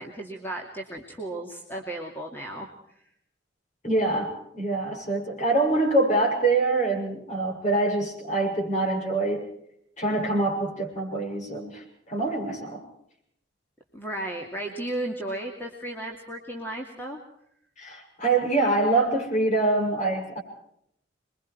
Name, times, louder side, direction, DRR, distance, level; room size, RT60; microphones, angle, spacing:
voice 1, 0.0-2.7 13.9-17.2, right 1 dB, 10° left, 0 dB, 2.5 m, -34 dB
voice 2, 3.8-9.5 10.0-12.8 17.8-20.4, right 2 dB, 40° left, 1 dB, 7.0 m, -25 dB
27.5 x 22.5 x 4.6 m, 0.71 s
head